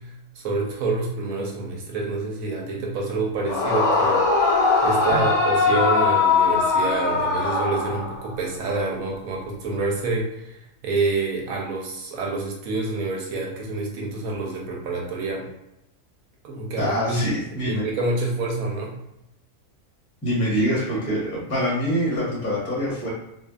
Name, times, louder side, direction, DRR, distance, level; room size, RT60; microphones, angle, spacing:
voice 1, 0.0-15.5 16.4-17.2 17.7-19.0, right 3 dB, 85° right, -1 dB, 1.1 m, -28 dB
Yell / Screaming, 3.4-8.4, left 4 dB, 70° left, 0.9 m, -20 dB
voice 2, 16.8-17.8 20.2-23.1, equal, 10° left, -7 dB, 0.9 m, -25 dB
2.6 x 2.4 x 2.3 m, 0.85 s
omnidirectional pair, 1.4 m